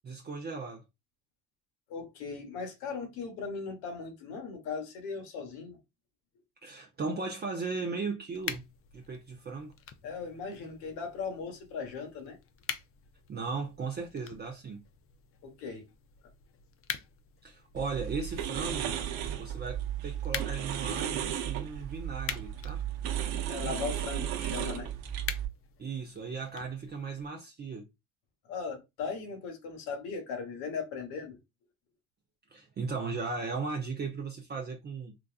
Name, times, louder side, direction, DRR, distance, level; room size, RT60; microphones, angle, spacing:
voice 1, 0.0-0.8 6.6-8.7 8.9-9.7 13.3-14.8 17.4-18.9 19.4-22.8 25.8-27.9 32.5-35.1, right 4 dB, 25° right, 0.5 m, -37 dB
voice 2, 1.9-5.8 10.0-12.4 15.4-15.8 23.5-24.9 28.4-31.4, left 5 dB, 75° left, 1.2 m, -38 dB
sound 1, 8.3-27.3, left 8 dB, 40° left, 0.5 m, -45 dB
sound 2, 17.7-25.5, right 10 dB, 70° right, 0.7 m, -34 dB
3.9 x 2.3 x 2.3 m
supercardioid pair, 70°, 37 cm